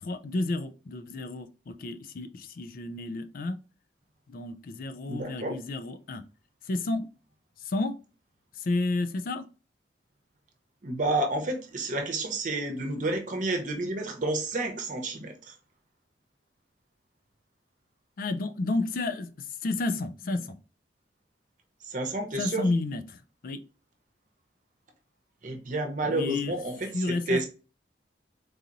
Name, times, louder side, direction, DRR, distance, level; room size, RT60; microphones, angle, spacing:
voice 1, 0.0-3.6 4.3-6.2 6.7-7.1 7.6-7.9 8.6-9.5 18.2-20.5 22.4-23.6 26.0-26.5 26.9-27.5, left 2 dB, 50° left, 0.4 m, -31 dB
voice 2, 5.1-5.6 10.8-15.5 21.8-22.7 25.4-27.5, right 2 dB, 45° right, 0.8 m, -30 dB
3.9 x 2.9 x 2.5 m
head